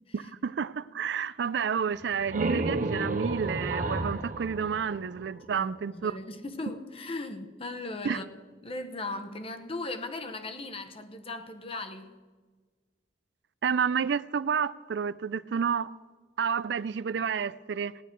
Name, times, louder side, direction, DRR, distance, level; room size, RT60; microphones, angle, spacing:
voice 1, 0.1-6.2 8.0-8.2 13.6-15.9 16.4-17.9, right 6 dB, 70° right, 0.4 m, -30 dB
sound 1, 1.9-5.6, right 2 dB, 50° right, 0.8 m, -32 dB
voice 2, 5.5-8.3 8.6-12.1, left 2 dB, 35° left, 1.0 m, -38 dB
18.0 x 10.0 x 4.5 m
head